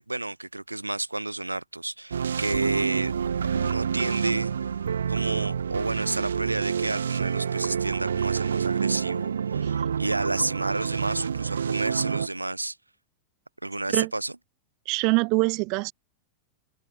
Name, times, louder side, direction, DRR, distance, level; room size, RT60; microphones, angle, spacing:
voice 1, 0.0-3.1 3.5-4.7 5.1-12.8 13.6-14.3, right 2 dB, 85° right, 2.4 m, -31 dB
sound 1, 2.1-12.3, right 7 dB, 70° right, 1.6 m, -28 dB
voice 2, 14.8-15.9, right 30 dB, 45° right, 1.4 m, -24 dB
figure-of-eight pair, 90°, 0 cm